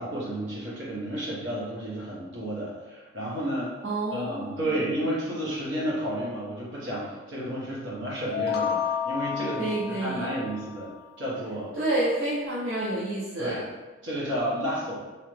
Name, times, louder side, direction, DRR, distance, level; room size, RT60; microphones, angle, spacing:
voice 1, 0.0-3.7 4.1-10.9 11.2-11.7 13.4-13.6 14.0-15.0, right 1 dB, 85° right, -6 dB, 1.2 m, -31 dB
voice 2, 3.8-4.7 9.6-10.3 11.7-13.6, right 1 dB, 70° right, -7 dB, 0.6 m, -29 dB
sound 1, 8.3-11.1, left 7 dB, 55° left, 0.4 m, -31 dB
3.2 x 2.8 x 3.2 m, 1.2 s
head